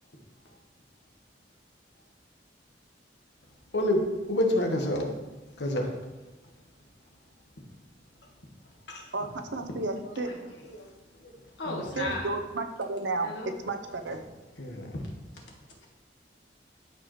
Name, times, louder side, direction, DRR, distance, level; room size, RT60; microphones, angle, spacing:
voice 1, 4.3-5.1 5.6-5.9 8.9-9.1 11.6-11.9 14.6-14.9, left 1 dB, 70° left, 1 dB, 1.3 m, -27 dB
voice 2, 9.1-10.3 12.0-14.2, right 2 dB, 85° right, 7 dB, 0.8 m, -32 dB
voice 3, 10.0-10.4 10.6-10.9 11.2-12.4 13.2-13.6 14.9-15.0 15.3-15.4, left 2 dB, 90° left, 0 dB, 1.7 m, -37 dB
13.0 x 4.7 x 3.2 m, 1.1 s
head